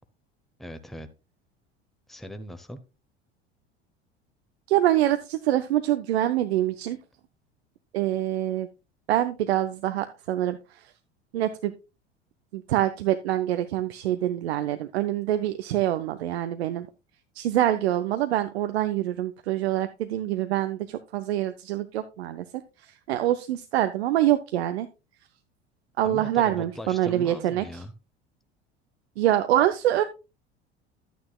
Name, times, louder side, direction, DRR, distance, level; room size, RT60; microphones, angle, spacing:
voice 1, 0.6-1.1 2.1-2.8 26.0-27.9, equal, ahead, 1.0 m, -39 dB
voice 2, 4.7-7.0 7.9-8.7 9.1-10.9 11.3-11.7 12.5-16.9 17.4-22.4 22.8-24.9 26.0-27.8 29.2-30.0, right 13 dB, 70° right, 0.7 m, -25 dB
11.5 x 9.2 x 2.3 m
figure-of-eight pair, 70°, 33 cm